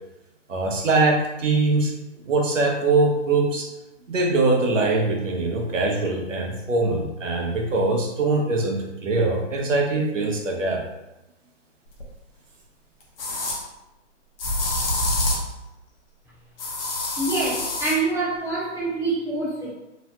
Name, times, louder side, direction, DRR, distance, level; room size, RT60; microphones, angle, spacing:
voice 1, 0.5-1.9 2.3-3.7 4.1-10.8, right 3 dB, 80° right, 0 dB, 0.8 m, -22 dB
sound 1, 12.0-12.1 13.2-13.6 14.4-15.5 16.6-18.0, left 1 dB, 50° left, 0.7 m, -26 dB
voice 2, 17.2-19.7, right 3 dB, 10° right, -10 dB, 0.7 m, -26 dB
3.1 x 2.1 x 2.8 m, 0.95 s
hypercardioid pair, 145°, 37 cm